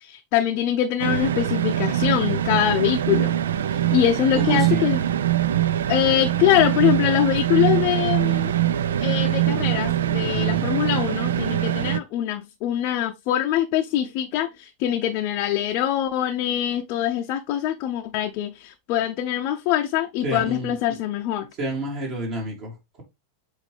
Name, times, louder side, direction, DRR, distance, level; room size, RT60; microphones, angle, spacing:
voice 1, 0.0-3.3 3.7-5.0 5.9-8.5 9.0-21.5, left 11 dB, 45° left, 0.6 m, -23 dB
sound 1, 1.0-12.0, right 12 dB, 60° right, 0.4 m, -23 dB
voice 2, 4.4-4.9 10.2-10.7 20.2-20.8 21.6-23.0, right 1 dB, 40° right, 2.7 m, -30 dB
7.3 x 4.0 x 3.3 m
figure-of-eight pair, 90°, 0 cm